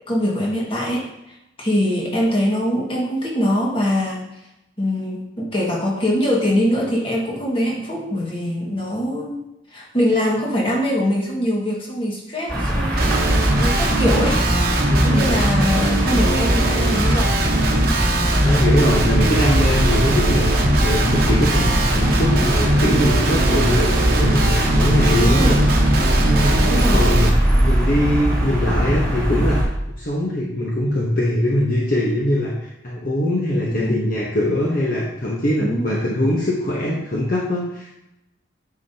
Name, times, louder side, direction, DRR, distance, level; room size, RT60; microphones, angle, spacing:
voice 1, 0.1-4.2 4.8-9.4 9.7-14.5 15.0-17.3 22.8-23.1 25.2-25.6 26.6-27.0 33.7-34.1 35.6-36.0, equal, 25° left, -3 dB, 1.7 m, -23 dB
sound 1, 12.5-29.6, equal, 10° left, 2.6 m, -20 dB
Guitar, 13.0-27.3, right 1 dB, 50° right, 1.0 m, -21 dB
voice 2, 14.9-15.3 18.4-20.6 20.8-25.6 26.2-29.7 30.0-37.9, left 1 dB, 45° left, -3 dB, 0.9 m, -22 dB
8.9 x 5.8 x 2.8 m, 0.89 s
head